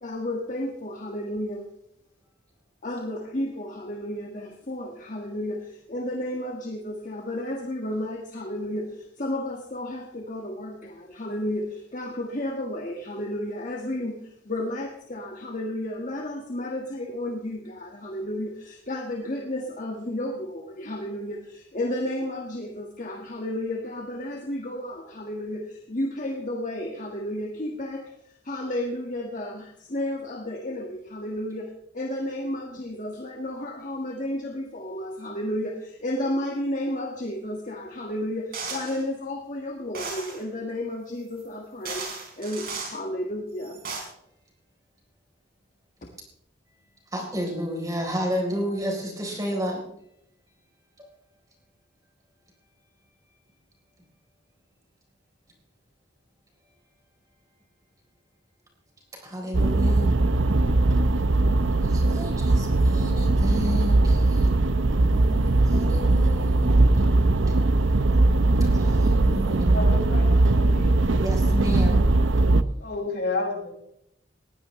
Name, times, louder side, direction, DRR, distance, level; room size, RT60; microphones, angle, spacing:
voice 1, 0.0-1.7 2.8-28.1 28.4-42.0 42.4-43.8, left 1 dB, 45° left, 2 dB, 1.7 m, -32 dB
sound 1, 38.5-39.0 39.9-40.4 41.4-41.5 41.9-43.0 43.6-44.0, right 4 dB, 50° right, 5.0 m, -35 dB
voice 2, 47.1-49.8 59.2-60.1 61.8-64.5 65.1-66.7 68.7-69.8 71.2-72.0, equal, 20° right, 0 dB, 3.9 m, -31 dB
sound 2, 59.5-72.6, right 2 dB, 90° right, 0.7 m, -20 dB
voice 3, 69.6-71.0 72.8-73.7, left 3 dB, 60° left, 0 dB, 5.9 m, -31 dB
20.5 x 15.5 x 3.2 m, 0.77 s
head